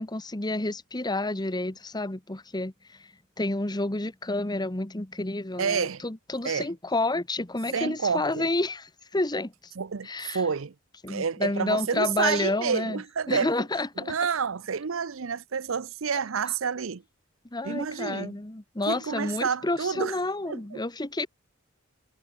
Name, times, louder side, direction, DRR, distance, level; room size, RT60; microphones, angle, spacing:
voice 1, 0.0-3.1 3.4-9.5 10.0-10.4 11.0-13.0 13.3-14.2 17.5-21.3, left 2 dB, 20° left, 1.3 m, -30 dB
voice 2, 5.6-6.0 6.4-6.7 7.7-8.5 9.8-10.7 11.1-13.5 14.0-17.0 17.6-18.4 18.9-20.1 20.4-20.8, right 6 dB, 75° right, 0.7 m, -29 dB
head